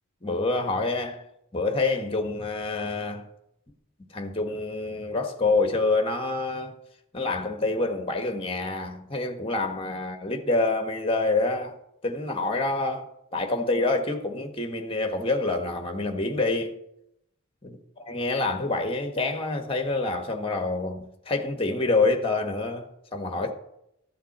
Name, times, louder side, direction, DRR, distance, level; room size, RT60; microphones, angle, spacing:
voice 1, 0.2-1.2 1.5-3.2 4.1-6.7 7.1-11.8 12.0-16.8 17.6-22.9 23.1-23.5, left 3 dB, 25° left, 1.4 m, -27 dB
14.0 x 9.5 x 4.3 m
head